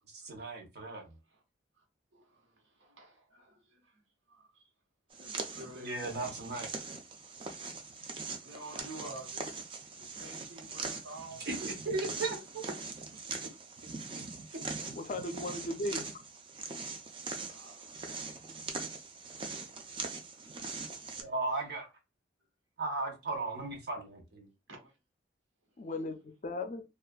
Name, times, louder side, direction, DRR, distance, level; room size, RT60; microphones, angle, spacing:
voice 1, 0.1-1.2 5.8-6.7 11.5-12.7 14.8-14.9 21.2-21.9 22.8-24.5, right 3 dB, 60° right, 0.8 m, -36 dB
voice 2, 2.1-4.7 5.1-6.3 8.1-9.5 10.0-11.5 12.3-12.4 13.4-13.5 16.9-18.3 24.7-25.0 25.8-25.9, right 1 dB, 90° right, 1.1 m, -50 dB
sound 1, 5.1-21.2, right 4 dB, 25° right, 0.3 m, -42 dB
voice 3, 14.9-16.1 25.8-26.8, left 2 dB, 40° left, 0.4 m, -37 dB
2.5 x 2.4 x 2.2 m
head